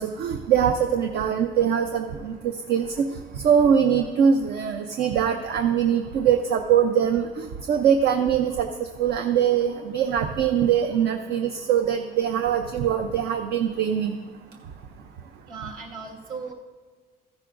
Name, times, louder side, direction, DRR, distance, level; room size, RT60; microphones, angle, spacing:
voice 1, 0.0-3.0 3.3-14.2, right 8 dB, 70° right, 6 dB, 0.6 m, -22 dB
voice 2, 15.4-16.5, right 5 dB, 55° right, 0 dB, 1.8 m, -37 dB
14.0 x 10.5 x 2.5 m, 1.5 s
cardioid pair, 110°, 17 cm